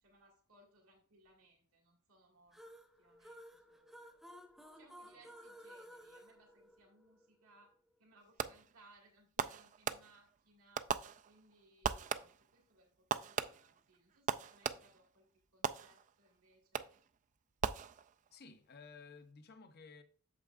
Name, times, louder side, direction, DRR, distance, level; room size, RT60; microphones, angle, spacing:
voice 1, 0.0-2.6 3.0-4.2 4.7-10.9 11.2-16.9, right 2 dB, 80° right, 2.0 m, -67 dB
sound 1, 2.5-7.3, equal, ahead, 0.8 m, -56 dB
Fireworks, 8.4-8.8 9.4-10.4 10.8-11.5 11.8-12.5 13.1-15.1 15.6-16.3 16.7-17.1 17.6-18.4, right 7 dB, 35° right, 0.3 m, -39 dB
voice 2, 18.3-20.0, left 4 dB, 50° left, 0.7 m, -55 dB
8.3 x 7.0 x 2.5 m
head